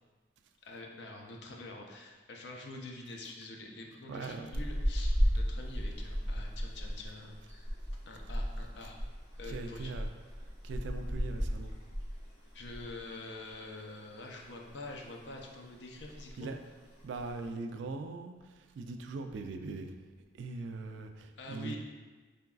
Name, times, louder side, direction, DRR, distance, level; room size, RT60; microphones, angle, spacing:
voice 1, 0.6-7.7 8.1-9.0 9.4-9.9 12.5-16.4 21.4-21.8, left 2 dB, 70° left, 1 dB, 0.5 m, -46 dB
voice 2, 4.1-4.5 9.5-10.1 10.6-11.7 16.4-16.6 17.0-19.9 20.3-21.8, right 3 dB, 80° right, 6 dB, 0.3 m, -41 dB
sound 1, 4.5-13.0 13.3-13.5 13.9-14.8 15.1-15.4 15.7-15.8 16.0-16.4 17.0-17.5, equal, 40° left, 1.3 m, -34 dB
3.8 x 3.5 x 2.3 m, 1.3 s
head